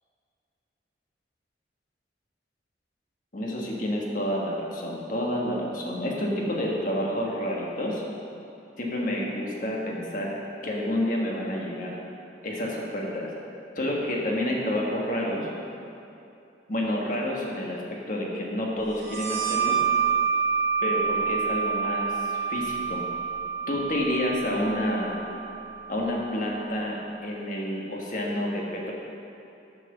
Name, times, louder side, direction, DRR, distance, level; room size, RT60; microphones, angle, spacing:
voice 1, 3.3-8.0 8.8-11.9 12.4-13.3 13.7-15.5 16.7-17.8 18.1-19.8 20.8-23.0 23.7-25.2 25.9-28.9, left 1 dB, 45° left, -2 dB, 1.4 m, -29 dB
sound 1, 19.0-26.3, right 6 dB, 80° right, 1.7 m, -28 dB
7.6 x 6.0 x 6.5 m, 2.8 s
head